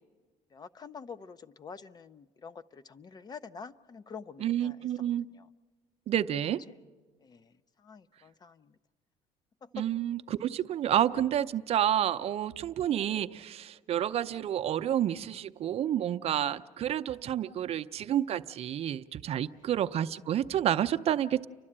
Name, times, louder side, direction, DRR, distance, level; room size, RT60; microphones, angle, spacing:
voice 1, 0.5-4.9 5.3-5.5 7.2-8.8 9.6-9.8 19.6-19.7, left 5 dB, 30° left, 13 dB, 0.5 m, -47 dB
voice 2, 4.4-5.3 6.1-6.6 9.7-21.5, right 11 dB, 50° right, 10 dB, 0.6 m, -29 dB
30.0 x 12.0 x 8.7 m, 1.4 s
cardioid pair, 120°, 13 cm